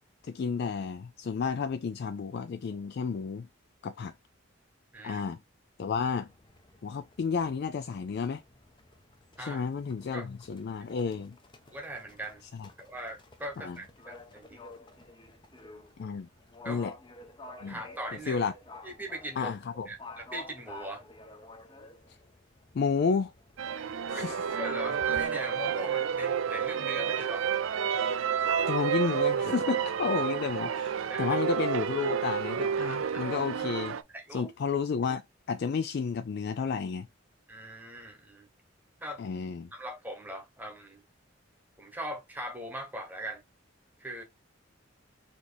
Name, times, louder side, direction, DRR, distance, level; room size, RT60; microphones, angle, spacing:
voice 1, 0.2-3.5 3.8-4.1 5.0-5.4 5.8-6.3 6.8-8.4 9.4-11.4 12.5-12.7 13.6-13.8 16.0-16.3 16.7-16.9 17.6-17.8 18.3-18.5 19.4-19.9 22.1-22.2 22.7-23.3 24.1-24.4 28.7-34.0 34.3-35.2 35.5-37.1 39.2-39.7, left 5 dB, 55° left, 0.3 m, -31 dB
Livestock farm animals working animals, 5.9-25.2, left 2 dB, 25° left, 0.7 m, -52 dB
voice 2, 11.7-12.4 12.8-14.6 16.6-16.8 17.7-18.4 18.8-19.5 19.9-21.0 24.1-27.5 30.0-30.2 31.1-31.4 32.8-33.2 34.1-34.5 37.5-38.5 39.0-39.2 39.7-41.0 41.8-43.4 44.0-44.2, right 1 dB, 10° right, 1.1 m, -40 dB
sound 1, 23.6-34.0, right 7 dB, 80° right, 0.4 m, -30 dB
4.2 x 3.0 x 3.3 m
head